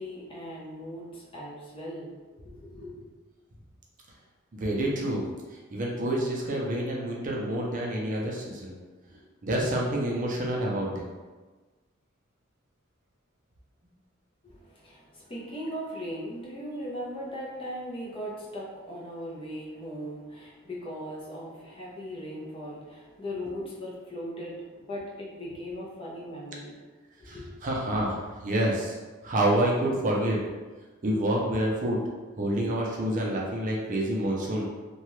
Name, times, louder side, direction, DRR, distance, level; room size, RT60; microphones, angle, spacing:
voice 1, 0.0-3.1 14.4-26.8 27.2-27.6, equal, 25° left, -5 dB, 0.6 m, -39 dB
voice 2, 4.5-5.2 5.7-8.7 9.4-11.1 27.3-27.4 27.6-29.0 29.2-30.4 31.0-32.0 32.4-34.7, right 1 dB, 40° right, -2 dB, 0.5 m, -28 dB
2.8 x 2.3 x 3.0 m, 1.3 s
head